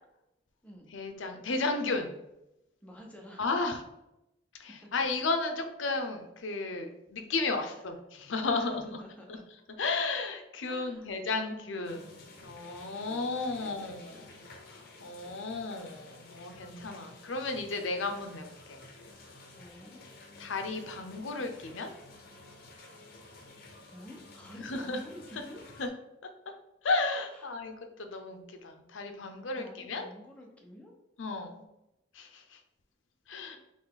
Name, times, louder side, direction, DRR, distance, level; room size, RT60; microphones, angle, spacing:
voice 1, 0.9-2.1 3.4-3.8 4.6-9.0 9.3-9.4 9.8-14.3 14.7-18.8 20.4-21.9 24.6-25.0 25.8-25.9 26.8-30.1 31.2-31.6 32.1-32.6 33.3-33.6, left 3 dB, 90° left, 5 dB, 0.6 m, -34 dB
voice 2, 2.8-3.4 4.7-4.9 7.6-7.8 8.5-9.4 10.6-11.1 12.9-14.3 19.5-20.0 23.9-25.6 27.3-27.7 29.5-30.9, equal, 5° left, 0 dB, 0.8 m, -51 dB
sound 1, 11.8-25.9, left 2 dB, 55° left, 0.8 m, -52 dB
4.0 x 3.2 x 3.8 m, 0.90 s
head